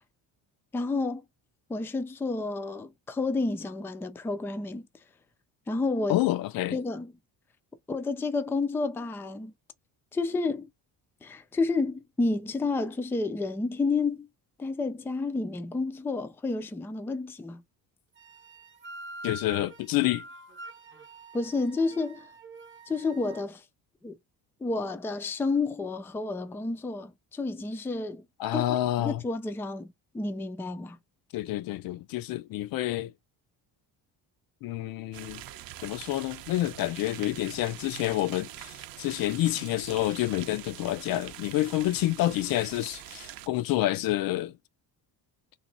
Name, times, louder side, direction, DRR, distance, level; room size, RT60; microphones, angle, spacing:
voice 1, 0.7-1.2 1.7-4.9 5.7-6.2 6.7-7.1 7.9-9.5 10.1-10.7 11.2-14.3 14.6-17.6 21.3-22.3 22.9-23.6 24.0-24.1 24.6-28.2 28.5-29.9 30.1-31.0, left 3 dB, 5° left, 0.3 m, -30 dB
voice 2, 6.1-6.8 19.2-20.2 28.4-29.2 31.3-33.1 34.6-35.4 35.8-44.6, left 15 dB, 65° left, 0.5 m, -28 dB
sound 1, 18.2-23.5, right 2 dB, 30° right, 0.8 m, -45 dB
sound 2, 35.1-43.5, right 13 dB, 65° right, 0.6 m, -44 dB
3.1 x 3.0 x 3.9 m
cardioid pair, 150°, 38 cm